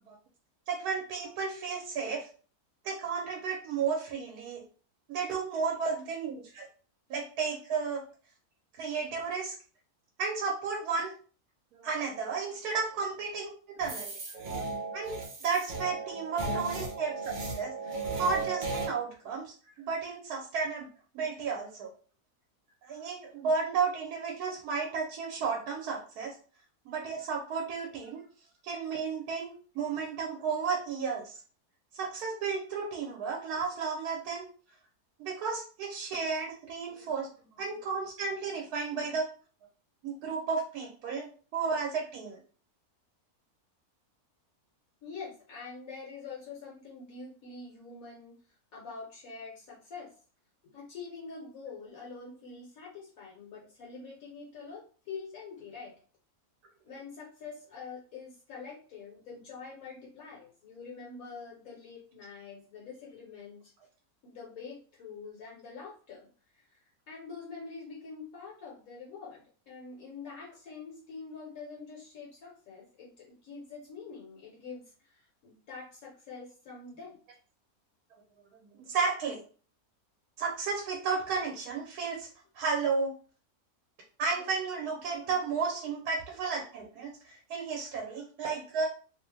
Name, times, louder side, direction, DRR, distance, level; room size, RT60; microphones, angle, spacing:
voice 1, 0.7-2.3 2.8-4.6 5.1-6.7 7.1-8.0 8.7-9.5 10.2-11.1 11.7-13.5 13.8-14.2 14.9-15.2 15.4-20.9 21.1-21.9 22.8-26.3 26.9-28.2 28.6-31.4 31.9-34.5 35.2-37.3 37.6-39.3 40.0-42.4 78.8-79.4 80.4-82.3 82.5-83.1 84.2-88.9, right 5 dB, 90° right, -1 dB, 1.1 m, -33 dB
sound 1, 13.8-18.9, right 3 dB, 55° right, 0.5 m, -36 dB
voice 2, 45.0-48.3 48.7-50.1 50.7-55.9 56.8-63.7 64.2-66.3 66.5-66.8 67.1-77.2 85.7-85.8, left 4 dB, 70° left, -4 dB, 1.2 m, -45 dB
2.8 x 2.0 x 3.1 m, 0.40 s
omnidirectional pair, 1.6 m